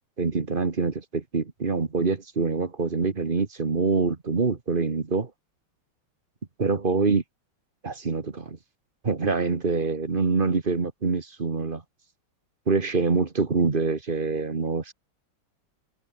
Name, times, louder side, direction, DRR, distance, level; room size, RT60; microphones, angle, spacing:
voice 1, 0.2-5.3 6.6-7.2 7.8-8.6 9.0-11.8 12.7-14.9, right 4 dB, 25° right, 1.5 m, -25 dB
omnidirectional pair, 2.3 m